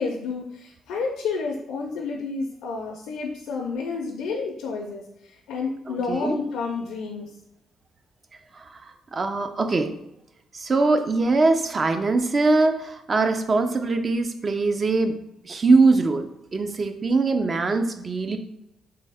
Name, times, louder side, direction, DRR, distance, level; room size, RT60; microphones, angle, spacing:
voice 1, 0.0-7.3, left 4 dB, 85° left, 1 dB, 0.4 m, -30 dB
voice 2, 5.9-6.4 8.5-9.9 10.5-15.2 15.4-18.4, right 3 dB, 35° right, 7 dB, 0.4 m, -22 dB
3.3 x 2.6 x 3.4 m, 0.82 s
cardioid pair, 90°, 0 cm